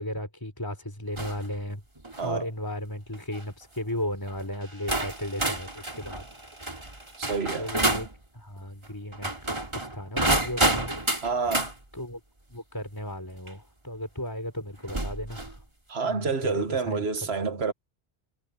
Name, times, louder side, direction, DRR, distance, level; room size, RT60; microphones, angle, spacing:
voice 1, 0.0-1.8 2.2-6.2 7.6-8.1 8.3-10.9 11.9-12.2 12.5-15.6 16.1-17.7, left 1 dB, 20° left, 3.7 m, -35 dB
sound 1, 1.2-1.5 2.0-2.3 3.1-3.4 4.3-4.4 4.9-8.1 9.1-11.7 13.5-13.6 14.9-15.6, right 1 dB, 25° right, 2.6 m, -29 dB
voice 2, 7.2-7.7 11.2-11.7 15.9-17.7, right 5 dB, 80° right, 1.6 m, -28 dB
omnidirectional pair, 1.1 m